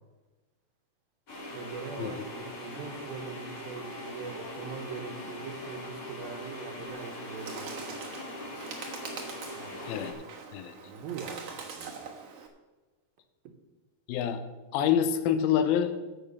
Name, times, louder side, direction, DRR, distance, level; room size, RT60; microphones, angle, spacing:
sound 1, 1.3-10.1, left 1 dB, 40° left, 2.9 m, -41 dB
voice 1, 1.5-7.7 9.6-9.8 10.8-12.2, right 5 dB, 75° right, 5 dB, 2.8 m, -42 dB
Bird, 6.9-12.5, right 5 dB, 55° right, 1.8 m, -43 dB
voice 2, 14.1-14.4 14.7-15.9, left 9 dB, 85° left, 8 dB, 2.6 m, -26 dB
13.5 x 7.3 x 5.5 m, 1.2 s
omnidirectional pair, 4.4 m